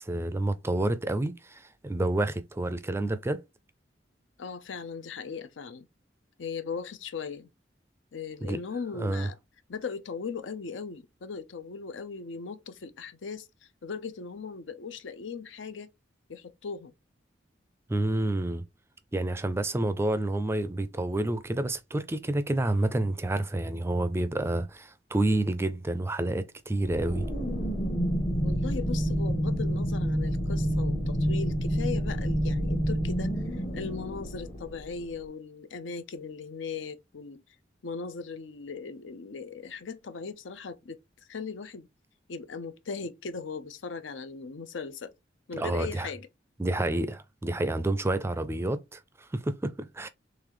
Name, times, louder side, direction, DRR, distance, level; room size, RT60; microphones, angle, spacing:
voice 1, 0.0-3.4 8.4-8.6 9.0-9.3 17.9-18.6 19.1-27.3 45.6-46.1 46.6-50.1, right 2 dB, 15° right, 0.4 m, -29 dB
voice 2, 4.4-5.9 6.4-7.5 8.1-9.4 9.7-13.5 13.8-15.9 16.3-16.9 28.4-37.4 37.8-41.0 41.3-41.9 42.3-45.1 45.5-46.3, left 5 dB, 85° left, 0.6 m, -38 dB
sound 1, 26.9-35.1, equal, 35° left, 1.0 m, -28 dB
3.9 x 3.2 x 3.0 m
head